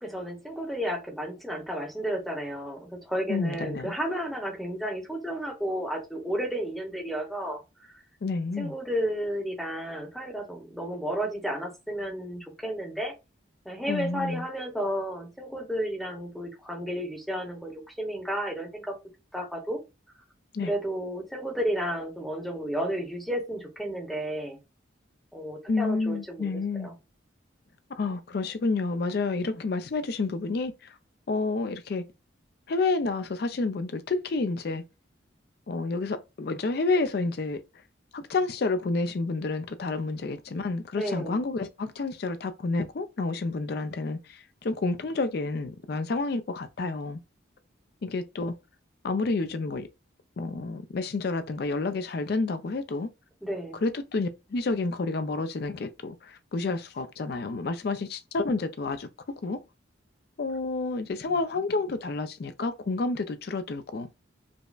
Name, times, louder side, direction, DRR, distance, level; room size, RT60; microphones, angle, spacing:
voice 1, 0.0-7.6 7.9-8.0 8.6-13.1 13.6-18.9 19.3-19.8 20.6-24.6 25.3-26.5 26.8-26.9 41.0-41.4 53.4-53.8, equal, ahead, 0.8 m, -32 dB
voice 2, 3.3-3.9 8.2-8.8 13.9-14.4 20.5-20.7 25.7-26.9 27.9-31.0 31.3-32.1 32.7-34.8 35.7-37.6 38.1-47.2 48.0-48.5 49.0-49.9 50.4-53.1 53.8-59.6 60.4-64.1, left 3 dB, 55° left, 0.4 m, -29 dB
5.1 x 2.1 x 2.4 m
head